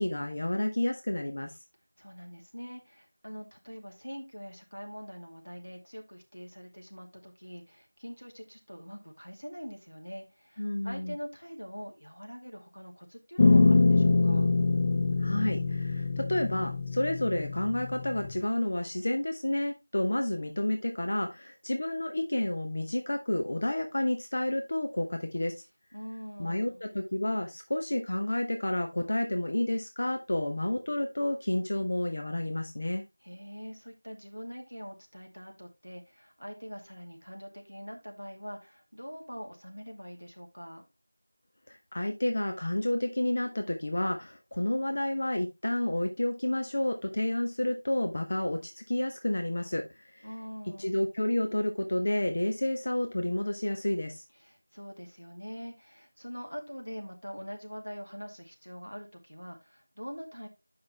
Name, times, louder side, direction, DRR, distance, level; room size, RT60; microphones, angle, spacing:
voice 1, 0.0-1.5 10.6-11.1 15.2-25.6 26.4-33.0 41.7-49.8 50.1-50.3 50.8-54.2, left 1 dB, 40° left, 5 dB, 0.8 m, -30 dB
voice 2, 2.0-14.5 25.9-26.9 33.2-40.8 50.2-51.0 54.4-60.5, equal, 90° left, 2 dB, 2.5 m, -44 dB
sound 1, 13.4-18.4, left 3 dB, 20° left, 0.3 m, -25 dB
7.9 x 5.6 x 3.2 m, 0.24 s
figure-of-eight pair, 175°, 0 cm